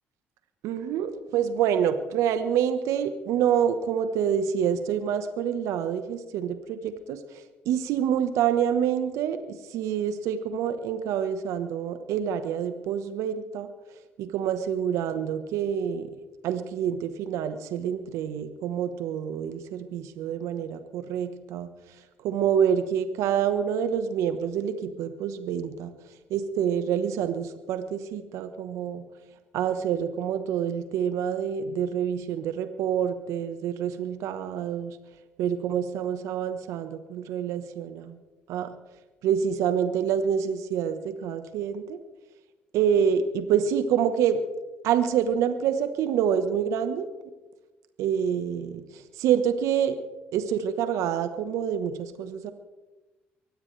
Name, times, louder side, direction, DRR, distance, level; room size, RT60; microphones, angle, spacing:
voice 1, 0.6-13.7 14.2-16.1 16.4-21.7 22.2-25.9 26.3-29.1 29.5-35.0 35.4-38.1 38.5-38.7 39.2-42.0 42.7-44.4 44.8-47.1 48.0-50.0 50.3-52.5, right 8 dB, 70° right, 10 dB, 1.3 m, -27 dB
23.5 x 17.0 x 3.4 m, 1.1 s
hypercardioid pair, 60°, 5 cm